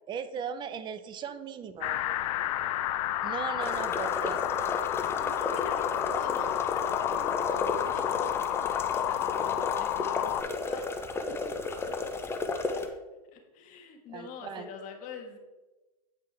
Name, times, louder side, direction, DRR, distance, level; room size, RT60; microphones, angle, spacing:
voice 1, 0.1-2.2 3.2-4.4 14.1-14.7, right 7 dB, 25° right, 12 dB, 0.6 m, -38 dB
sound 1, 1.8-10.4, left 13 dB, 55° left, 0.5 m, -30 dB
sound 2, 3.6-12.9, left 3 dB, 10° left, 0.7 m, -33 dB
voice 2, 3.8-4.5 5.2-10.9 11.3-11.5 11.9-12.0 12.5-13.0 13.3-15.4, left 4 dB, 40° left, 4 dB, 1.5 m, -46 dB
9.0 x 5.2 x 3.4 m, 1.1 s
hypercardioid pair, 120°, 20 cm